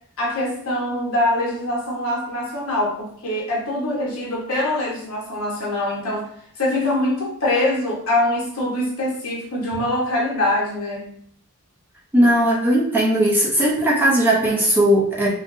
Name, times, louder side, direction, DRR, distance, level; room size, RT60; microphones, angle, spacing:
voice 1, 0.2-11.2, left 1 dB, 70° left, -4 dB, 1.0 m, -24 dB
voice 2, 12.1-15.3, right 1 dB, 10° right, -6 dB, 0.6 m, -18 dB
3.6 x 2.1 x 2.5 m, 0.64 s
head